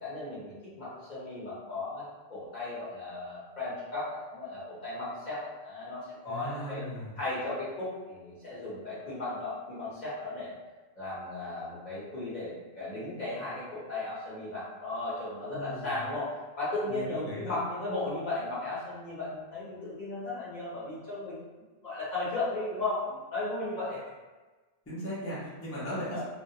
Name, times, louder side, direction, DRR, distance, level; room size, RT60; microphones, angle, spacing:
voice 1, 0.0-6.8 7.2-10.6 11.0-21.4 21.8-24.0 26.0-26.2, left 2 dB, 45° left, -9 dB, 0.8 m, -36 dB
voice 2, 6.3-7.2 15.5-15.9 16.9-17.6 24.9-26.2, equal, 15° left, -9 dB, 0.5 m, -37 dB
2.2 x 2.0 x 2.7 m, 1.3 s
omnidirectional pair, 1.2 m